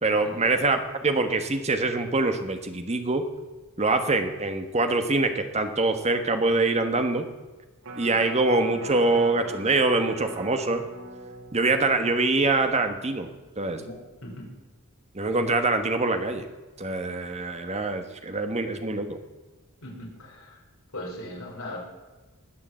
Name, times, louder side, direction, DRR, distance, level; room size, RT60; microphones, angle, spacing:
voice 1, 0.0-3.2 3.8-7.3 8.0-10.8 11.5-13.3 13.6-13.8 15.1-16.5 16.8-19.2, right 3 dB, 30° right, 7 dB, 1.3 m, -24 dB
Electric guitar, 7.8-14.1 14.4-14.5, right 2 dB, 85° right, 2.1 m, -41 dB
voice 2, 13.7-14.5 19.8-20.6 20.9-21.8, left 1 dB, 65° left, -2 dB, 5.1 m, -39 dB
20.0 x 6.9 x 7.8 m, 1.2 s
head